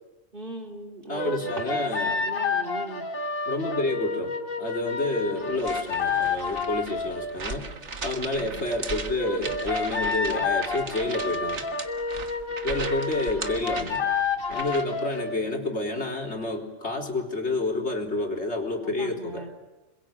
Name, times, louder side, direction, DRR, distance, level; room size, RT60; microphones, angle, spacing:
voice 1, 0.3-1.8 2.0-3.1 8.3-8.7 13.8-13.9 18.8-19.7, right 2 dB, 40° right, 4 dB, 3.2 m, -39 dB
voice 2, 1.1-2.2 3.5-7.7 8.0-11.6 12.6-14.0 14.5-19.4, left 2 dB, 55° left, 0 dB, 4.0 m, -29 dB
sound 1, 1.2-7.4 9.2-15.4, left 4 dB, 90° left, 2.5 m, -29 dB
sound 2, 5.5-15.0, right 4 dB, 60° right, 1.9 m, -38 dB
27.0 x 22.0 x 8.8 m, 1.1 s
omnidirectional pair, 1.4 m